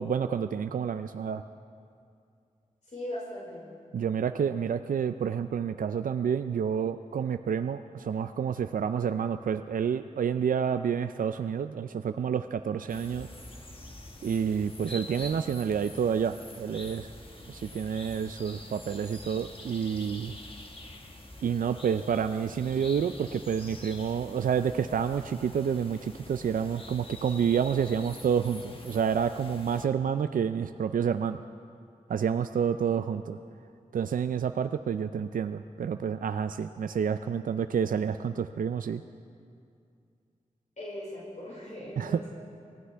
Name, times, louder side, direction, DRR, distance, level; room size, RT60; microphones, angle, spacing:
voice 1, 0.0-1.4 3.9-13.3 14.2-17.1 17.5-20.4 21.4-31.4 32.1-33.4 33.9-39.0 42.0-42.3, right 7 dB, 80° right, 10 dB, 0.4 m, -29 dB
voice 2, 2.9-3.6 40.8-42.3, left 1 dB, 60° left, -6 dB, 5.0 m, -39 dB
sound 1, 12.9-29.9, left 1 dB, 40° left, 1.7 m, -46 dB
24.0 x 16.0 x 3.4 m, 2.4 s
cardioid pair, 45°, 14 cm